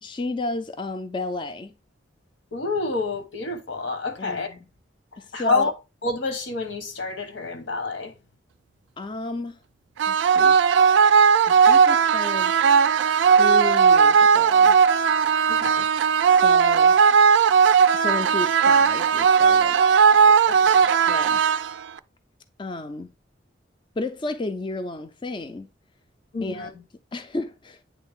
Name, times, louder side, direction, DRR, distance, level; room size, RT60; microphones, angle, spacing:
voice 1, 0.0-1.7 4.2-4.7 5.2-5.7 9.0-9.6 10.1-10.6 11.5-12.5 13.0-14.8 16.2-17.0 17.9-19.8 21.1-21.4 22.6-23.1 24.0-25.7 26.4-27.8, left 2 dB, 25° left, 0.4 m, -32 dB
voice 2, 2.5-4.5 5.3-5.7 6.0-8.1 15.5-15.9 20.0-20.9 26.3-26.7, left 3 dB, 80° left, 1.1 m, -28 dB
sound 1, 10.0-22.0, right 6 dB, 75° right, 0.3 m, -17 dB
8.5 x 3.3 x 3.5 m
head